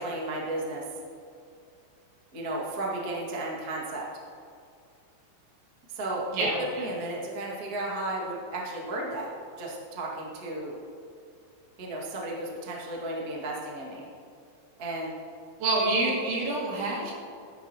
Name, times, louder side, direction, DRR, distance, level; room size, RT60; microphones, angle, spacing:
voice 1, 0.0-0.8 2.3-4.0 5.9-9.3 9.6-10.8 11.8-14.1 14.8-15.1, right 2 dB, 40° right, -4 dB, 1.2 m, -34 dB
voice 2, 6.3-6.9 15.6-17.1, right 2 dB, 80° right, -3 dB, 4.7 m, -27 dB
15.5 x 12.5 x 3.0 m, 2.4 s
omnidirectional pair, 5.2 m